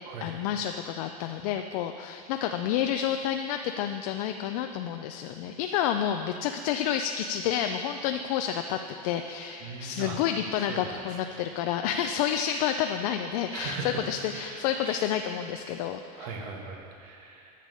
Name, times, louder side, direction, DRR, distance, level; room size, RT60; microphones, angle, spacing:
voice 1, 0.2-16.3, left 9 dB, 70° left, 6 dB, 0.5 m, -29 dB
voice 2, 9.6-10.2 10.6-11.4 13.5-15.1 16.1-17.5, right 4 dB, 75° right, 0 dB, 1.7 m, -39 dB
10.5 x 6.8 x 5.5 m, 2.6 s
supercardioid pair, 135°, 20 cm